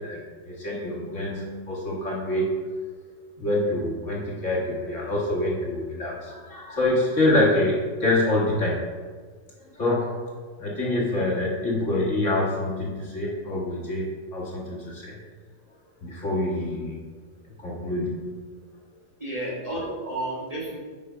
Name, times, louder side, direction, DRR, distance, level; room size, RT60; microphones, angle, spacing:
voice 1, 0.0-2.6 3.4-8.8 9.6-10.2 10.6-15.2 16.0-17.1 17.6-18.2, left 1 dB, 40° left, -5 dB, 1.9 m, -26 dB
voice 2, 19.2-20.8, right 1 dB, 20° right, -6 dB, 1.5 m, -31 dB
8.5 x 5.1 x 5.6 m, 1.5 s
omnidirectional pair, 2.2 m